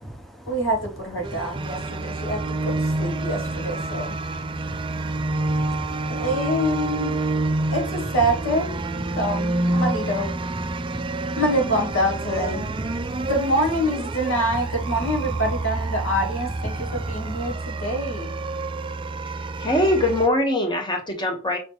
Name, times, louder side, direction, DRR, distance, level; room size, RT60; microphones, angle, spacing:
voice 1, 0.5-4.1 6.1-7.1 7.7-8.7 9.2-10.3 11.4-12.6 13.3-18.3, equal, 65° left, 2.1 m, -25 dB
sound 1, 1.2-20.3, right 2 dB, 25° right, 0.4 m, -28 dB
voice 2, 4.7-6.3 10.7-11.3 13.0-13.3 16.7-16.9, equal, ahead, 0.8 m, -38 dB
voice 3, 19.6-21.6, left 1 dB, 20° left, 1.4 m, -22 dB
5.8 x 3.9 x 4.8 m
head